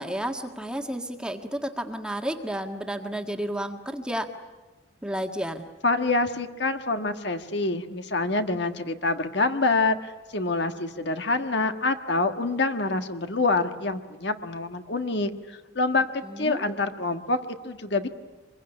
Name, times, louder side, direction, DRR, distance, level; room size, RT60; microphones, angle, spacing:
voice 1, 0.0-4.3 5.0-5.7 16.2-16.7, right 1 dB, 5° right, 4 dB, 1.6 m, -31 dB
voice 2, 5.8-16.0 16.4-18.1, left 3 dB, 55° left, 8 dB, 1.5 m, -26 dB
25.5 x 22.5 x 9.9 m, 1.2 s
head